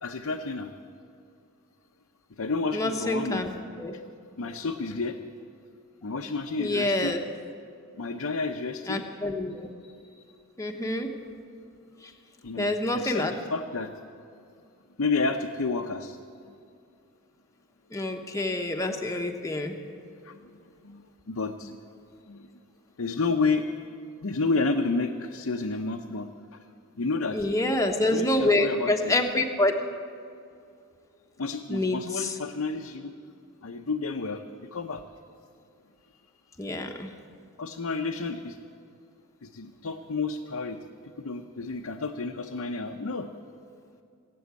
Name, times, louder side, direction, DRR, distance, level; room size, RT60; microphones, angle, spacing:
voice 1, 0.0-0.7 2.4-3.5 4.4-5.2 6.0-7.2 7.9-9.1 10.2-10.3 12.4-13.9 15.0-16.2 20.2-20.6 20.8-21.8 22.3-22.5 23.0-23.7 24.2-26.3 27.0-27.5 28.1-29.2 31.4-33.1 33.6-34.4 34.7-35.0 37.6-38.6 39.4-40.8 41.2-43.3, left 3 dB, 75° left, 2 dB, 0.7 m, -30 dB
voice 2, 2.7-3.5 3.8-3.9 6.6-7.2 8.9-9.7 10.6-11.1 12.6-13.3 17.9-19.7 27.3-29.7 31.7-32.3 36.6-37.1, left 1 dB, 15° left, 3 dB, 1.0 m, -27 dB
19.5 x 8.5 x 8.2 m, 2.4 s
head